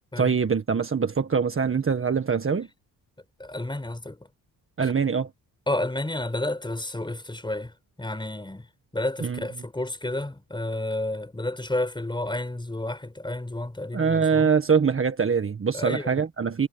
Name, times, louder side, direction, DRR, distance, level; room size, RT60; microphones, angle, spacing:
voice 1, 0.2-2.7 4.8-5.3 9.2-9.5 13.9-16.7, right 6 dB, 35° right, 1.6 m, -23 dB
voice 2, 3.4-4.2 4.8-4.9 5.7-7.7 8.0-8.7 8.9-14.5 15.7-16.2, left 1 dB, 10° left, 4.9 m, -31 dB
cardioid pair, 105°, 37 cm